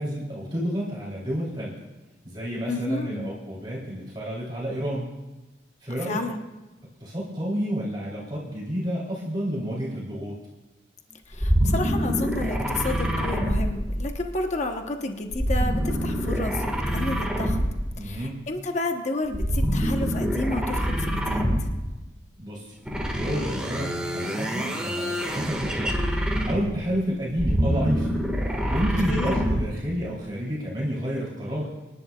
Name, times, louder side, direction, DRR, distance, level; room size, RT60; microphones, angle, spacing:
voice 1, 0.0-1.7 2.2-5.1 5.8-6.2 7.0-10.3 17.9-18.4 22.4-22.7 23.1-26.0 26.5-28.1 28.5-31.7, equal, 25° right, -5 dB, 3.0 m, -30 dB
voice 2, 2.7-3.3 6.1-6.4 11.3-17.6 18.0-21.7 29.0-29.5, left 2 dB, 40° left, 4 dB, 0.9 m, -31 dB
sound 1, 11.3-14.4 15.3-18.0 19.3-21.9 22.9-26.8 27.3-29.8, equal, 5° right, 1.6 m, -26 dB
27.0 x 11.0 x 2.3 m, 1.1 s
head